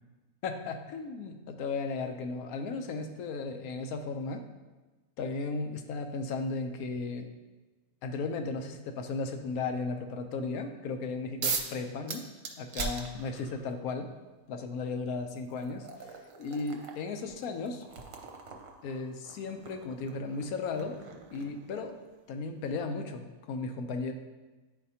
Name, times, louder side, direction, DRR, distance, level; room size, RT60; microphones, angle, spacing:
voice 1, 0.4-4.4 5.2-7.3 8.0-12.2 12.6-14.1 14.5-16.1 16.4-17.8 18.8-21.0 21.3-22.0 22.3-24.1, left 4 dB, 75° left, 6 dB, 1.1 m, -35 dB
sound 1, 11.4-11.8 12.1-13.6 14.7-14.8 15.4-22.0, right 4 dB, 65° right, 1.1 m, -40 dB
9.8 x 4.4 x 2.8 m, 1.2 s
omnidirectional pair, 1.6 m